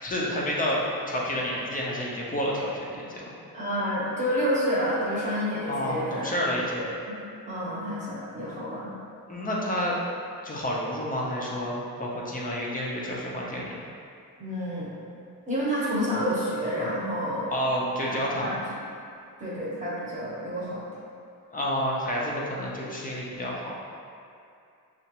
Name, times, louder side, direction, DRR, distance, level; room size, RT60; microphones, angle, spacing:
voice 1, 0.0-3.2 5.7-6.8 9.3-10.0 10.4-13.8 17.5-18.5 21.5-23.9, equal, 25° left, -4 dB, 0.6 m, -29 dB
voice 2, 3.5-7.2 7.5-9.0 14.4-14.9 15.5-17.5 18.1-18.5 19.4-20.8, equal, 20° right, -9 dB, 0.9 m, -29 dB
6.5 x 2.5 x 2.9 m, 2.5 s
wide cardioid pair, 170°, 36 cm